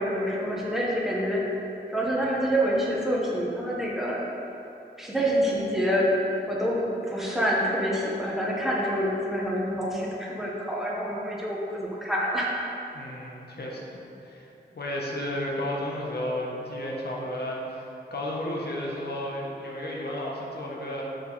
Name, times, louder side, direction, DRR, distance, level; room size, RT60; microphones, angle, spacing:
voice 1, 0.0-4.2 5.0-6.1 6.5-12.6, equal, ahead, -5 dB, 1.2 m, -27 dB
voice 2, 12.9-14.0 14.2-14.5 14.7-21.0, left 1 dB, 65° left, -3 dB, 1.2 m, -33 dB
6.3 x 5.0 x 4.8 m, 3.0 s
wide cardioid pair, 110°, 18 cm